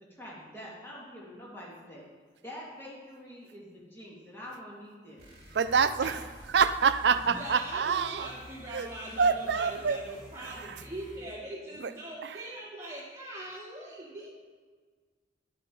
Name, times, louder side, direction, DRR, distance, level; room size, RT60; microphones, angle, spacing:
voice 1, 0.0-2.1 2.4-5.2, equal, 15° left, -5 dB, 2.3 m, -46 dB
sound 1, 5.2-11.4, equal, 30° right, 3.2 m, -50 dB
voice 2, 5.5-8.3 8.7-8.9 9.2-10.0, right 6 dB, 70° right, 12 dB, 0.5 m, -26 dB
sound 2, 5.9-9.7, left 1 dB, 40° left, 2.4 m, -52 dB
voice 3, 7.1-14.3, right 1 dB, 15° right, -5 dB, 2.3 m, -42 dB
11.0 x 6.7 x 5.3 m, 1.5 s
head